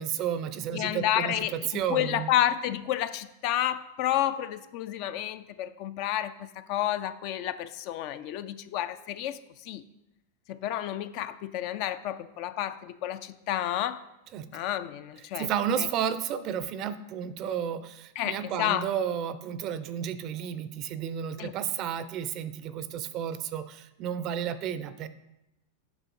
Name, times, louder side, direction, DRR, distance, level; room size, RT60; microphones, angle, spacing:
voice 1, 0.0-2.3 14.3-14.5 15.4-25.1, right 9 dB, 40° right, 13 dB, 0.4 m, -32 dB
voice 2, 0.7-9.8 10.5-14.0 14.5-15.5 15.8-15.9 18.2-18.9 21.4-21.5, left 12 dB, 50° left, 12 dB, 0.3 m, -30 dB
8.0 x 5.6 x 2.6 m, 0.92 s
hypercardioid pair, 95°, 0 cm